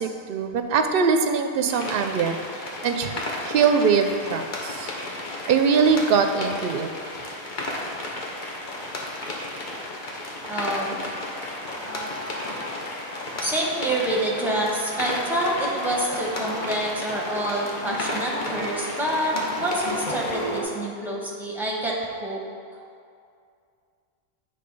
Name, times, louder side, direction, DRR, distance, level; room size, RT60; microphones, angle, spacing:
voice 1, 0.0-2.4 2.8-3.1 3.4-4.9 5.5-6.9, right 5 dB, 65° right, 7 dB, 0.7 m, -22 dB
sound 1, 1.7-20.6, left 1 dB, 50° left, 1.0 m, -34 dB
voice 2, 10.5-10.9 13.4-21.9 22.2-22.4, right 1 dB, ahead, -3 dB, 1.1 m, -27 dB
sound 2, 11.3-20.6, left 1 dB, 30° left, 1.4 m, -36 dB
8.5 x 3.8 x 5.3 m, 2.3 s
omnidirectional pair, 1.1 m